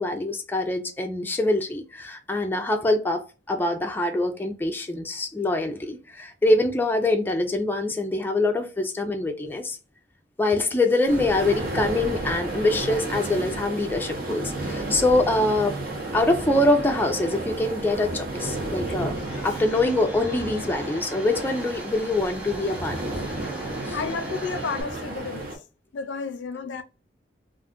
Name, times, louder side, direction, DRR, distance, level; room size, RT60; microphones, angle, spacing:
voice 1, 0.0-9.8 10.4-15.7 16.1-19.2 19.4-23.1 23.8-24.0, left 2 dB, 10° left, 0.4 m, -24 dB
sound 1, 11.1-25.6, right 2 dB, 50° right, 0.9 m, -32 dB
Domestic sounds home sounds, 19.1-24.8, equal, 5° right, 0.8 m, -41 dB
voice 2, 23.9-25.5 25.9-26.8, left 5 dB, 80° left, 0.4 m, -32 dB
2.5 x 2.4 x 3.6 m
head